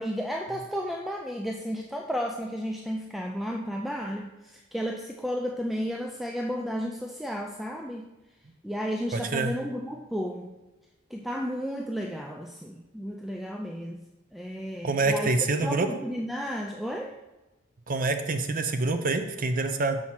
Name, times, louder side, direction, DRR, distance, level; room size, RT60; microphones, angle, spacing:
voice 1, 0.0-8.1 8.6-10.5 11.1-14.0 14.3-17.2, equal, ahead, 1 dB, 0.4 m, -33 dB
voice 2, 9.1-9.5 14.8-15.9 17.9-20.0, right 3 dB, 45° right, 7 dB, 0.6 m, -26 dB
6.4 x 4.2 x 5.8 m, 1.1 s
head